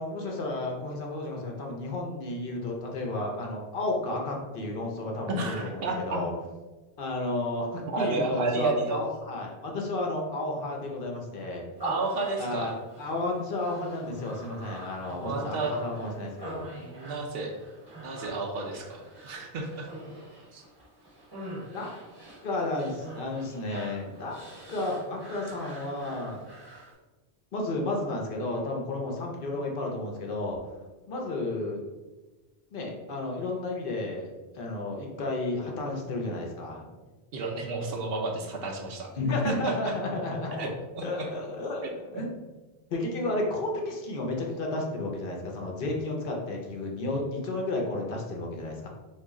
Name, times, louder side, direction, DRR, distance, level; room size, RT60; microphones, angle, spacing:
voice 1, 0.0-6.3 7.0-11.6 12.4-16.7 21.7-21.9 22.4-24.4 24.7-26.4 27.5-30.6 31.1-31.8 32.7-34.3 34.5-36.9 39.2-40.7 41.0-42.3 42.9-48.9, left 2 dB, 60° left, 0 dB, 0.7 m, -32 dB
voice 2, 5.3-6.2 7.9-9.0 11.8-12.7 15.2-15.7 16.8-17.5 18.0-19.9 20.5-20.6 37.3-39.1 39.4-39.9 40.6-41.3 41.8-42.2, right 3 dB, 70° right, 2 dB, 0.7 m, -31 dB
Human voice, 11.8-26.9, right 1 dB, 25° right, 0.8 m, -45 dB
3.0 x 2.4 x 3.5 m, 1.2 s
omnidirectional pair, 1.1 m